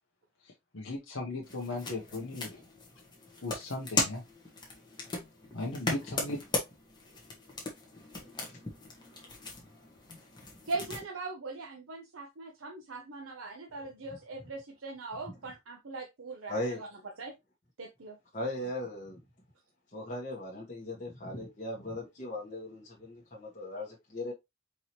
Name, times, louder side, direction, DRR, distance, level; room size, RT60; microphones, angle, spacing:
voice 1, 0.7-2.6 3.4-4.2 5.5-6.4, left 2 dB, 70° left, 0.9 m, -37 dB
sound 1, 1.4-11.0, left 3 dB, 20° left, 1.1 m, -38 dB
voice 2, 10.7-16.9 17.2-17.3 17.8-18.1, right 3 dB, 75° right, 0.7 m, -40 dB
voice 3, 16.5-16.8 18.3-19.2 19.9-24.3, left 1 dB, 35° left, 1.4 m, -38 dB
4.7 x 3.1 x 2.9 m
head